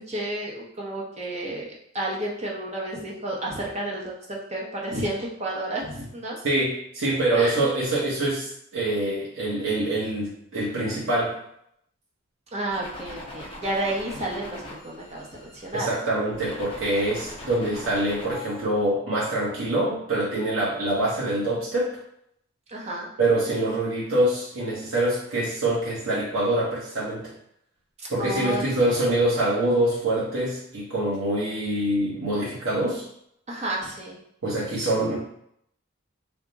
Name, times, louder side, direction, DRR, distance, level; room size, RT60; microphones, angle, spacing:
voice 1, 0.0-1.7 1.9-6.4 7.3-7.7 12.5-16.1 22.7-23.1 28.0-28.9 33.5-34.2, right 1 dB, 30° right, -3 dB, 0.7 m, -31 dB
voice 2, 6.4-11.3 15.7-21.9 23.2-27.3 28.1-33.0 34.4-35.2, right 1 dB, 75° right, -6 dB, 0.9 m, -25 dB
sound 1, 12.7-15.9 16.3-18.6, left 1 dB, 25° left, 0.7 m, -41 dB
3.5 x 2.1 x 3.9 m, 0.73 s
head